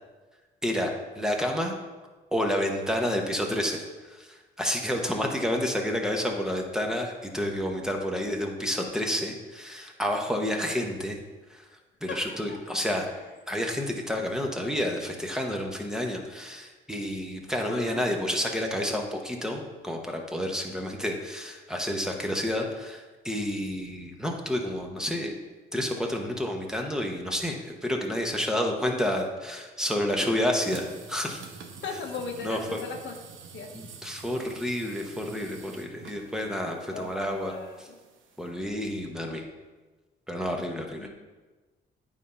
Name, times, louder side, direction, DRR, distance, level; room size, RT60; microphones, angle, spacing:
voice 1, 1.1-1.7 2.3-11.2 11.5-11.6 12.0-13.1 13.5-25.3 25.7-31.4 32.4-32.8 33.7-37.5 37.8-37.9 38.4-39.4 40.3-41.1, left 1 dB, 5° right, 1 dB, 1.1 m, -30 dB
voice 2, 12.1-12.6 12.9-13.0 17.6-18.0 31.8-33.1 33.5-33.7 36.9-38.0 41.0-41.1, left 4 dB, 70° left, 3 dB, 1.1 m, -37 dB
sound 1, 30.6-38.5, right 5 dB, 75° right, 0.9 m, -47 dB
9.2 x 3.7 x 5.5 m, 1.3 s
cardioid pair, 90°, 20 cm